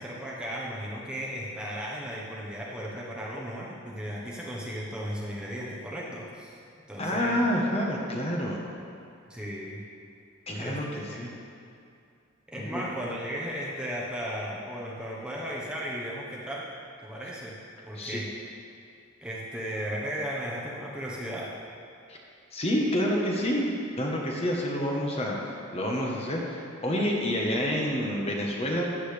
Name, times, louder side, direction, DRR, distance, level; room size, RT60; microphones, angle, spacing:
voice 1, 0.0-6.6 6.9-7.4 9.3-9.8 10.6-11.3 12.5-16.7 17.0-17.5 17.8-18.3 19.2-21.5, equal, 5° right, -5 dB, 1.1 m, -35 dB
voice 2, 7.0-8.6 10.5-11.3 12.6-12.8 17.9-18.2 22.1-22.2 22.5-29.0, equal, 30° left, -2 dB, 1.1 m, -28 dB
14.5 x 7.9 x 3.4 m, 2.5 s
head